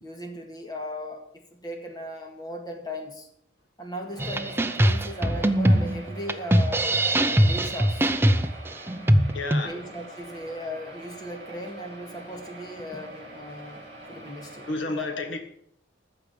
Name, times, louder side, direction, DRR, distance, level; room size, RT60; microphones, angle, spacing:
voice 1, 0.0-1.2 1.5-3.3 3.8-6.9 7.1-8.1 9.6-15.2, left 1 dB, 20° left, 1.9 m, -37 dB
sound 1, 4.0-14.8, right 2 dB, 35° right, 5.3 m, -44 dB
sound 2, 4.2-9.6, right 1 dB, 10° right, 0.5 m, -22 dB
voice 2, 9.3-9.7 14.7-15.4, left 2 dB, 80° left, 1.5 m, -31 dB
14.0 x 4.9 x 8.5 m
head